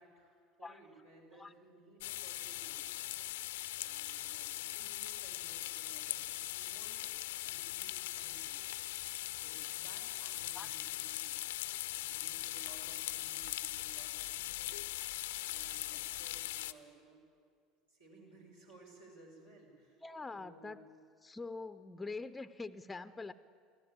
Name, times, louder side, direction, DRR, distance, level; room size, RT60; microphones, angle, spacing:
voice 1, 0.0-3.1 3.7-7.1 7.4-8.8 9.3-11.4 12.0-17.2 17.9-20.0 20.3-20.8, right 2 dB, 75° right, -3 dB, 5.6 m, -59 dB
sound 1, 2.0-16.7, left 16 dB, 65° left, 0.6 m, -40 dB
voice 2, 20.0-20.8 21.2-23.3, left 3 dB, 15° left, 13 dB, 0.6 m, -44 dB
24.0 x 15.5 x 8.8 m, 2.2 s
figure-of-eight pair, 70°, 0 cm